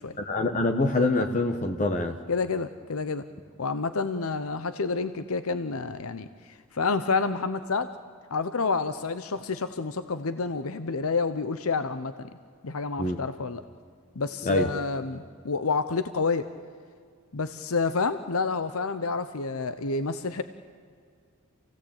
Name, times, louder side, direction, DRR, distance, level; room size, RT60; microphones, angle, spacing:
voice 1, 0.2-2.2 13.0-13.2 14.4-14.7, left 2 dB, 35° left, 5 dB, 1.2 m, -25 dB
voice 2, 2.3-3.2 3.6-7.9 8.3-12.3 12.6-13.6 14.2-16.5 17.3-20.4, left 4 dB, 80° left, 11 dB, 0.9 m, -29 dB
28.0 x 17.0 x 8.8 m, 2.1 s
head